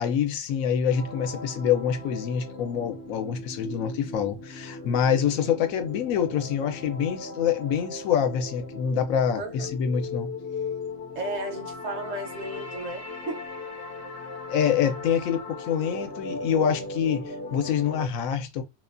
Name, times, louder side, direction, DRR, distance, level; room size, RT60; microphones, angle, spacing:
voice 1, 0.0-10.3 14.5-18.6, left 8 dB, 90° left, 1.0 m, -26 dB
sound 1, 0.9-18.1, left 3 dB, 60° left, 0.8 m, -38 dB
voice 2, 4.7-5.1 9.4-9.7 11.1-13.5, right 2 dB, 65° right, 0.8 m, -35 dB
2.6 x 2.2 x 2.4 m
omnidirectional pair, 1.4 m